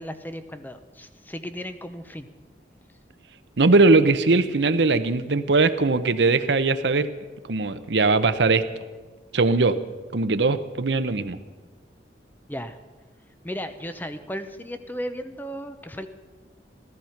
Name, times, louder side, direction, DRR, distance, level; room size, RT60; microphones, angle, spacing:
voice 1, 0.0-2.3 12.5-12.8 13.4-16.1, equal, 10° left, 9 dB, 0.6 m, -35 dB
voice 2, 3.6-7.1 7.5-8.6 9.3-9.8 10.1-11.4, right 3 dB, 80° right, 11 dB, 0.8 m, -20 dB
14.5 x 14.0 x 5.8 m, 1.3 s
head